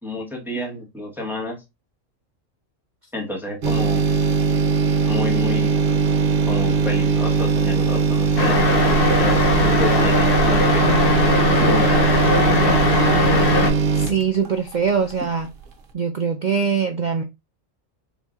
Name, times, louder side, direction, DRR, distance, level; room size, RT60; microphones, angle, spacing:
voice 1, 0.0-1.6 3.1-4.0 5.1-6.2 6.5-10.9 11.6-12.8, left 2 dB, ahead, 1.0 m, -30 dB
sound 1, 3.6-15.2 15.6-15.7, right 5 dB, 45° right, 0.9 m, -20 dB
sound 2, 8.4-13.7, left 3 dB, 50° left, 1.0 m, -19 dB
voice 2, 13.9-15.5 15.9-17.2, right 6 dB, 65° right, 0.4 m, -22 dB
4.4 x 3.9 x 2.4 m
omnidirectional pair, 1.3 m